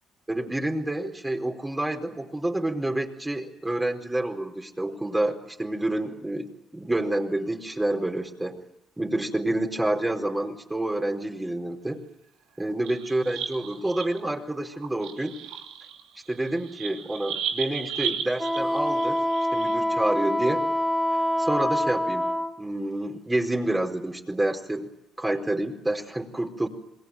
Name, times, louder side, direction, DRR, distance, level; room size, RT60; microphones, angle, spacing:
voice 1, 0.3-8.6 9.0-12.0 12.6-15.4 16.3-19.2 19.5-20.6 21.4-22.3 22.6-24.9 25.2-26.7, right 1 dB, 15° right, 2 dB, 4.3 m, -28 dB
sound 1, 12.7-14.3 14.7-19.8, right 7 dB, 75° right, 2.8 m, -35 dB
Wind instrument woodwind instrument, 18.4-22.5, left 1 dB, 5° left, 3.3 m, -25 dB
27.5 x 21.0 x 9.3 m, 0.86 s
hypercardioid pair, 55°, 0 cm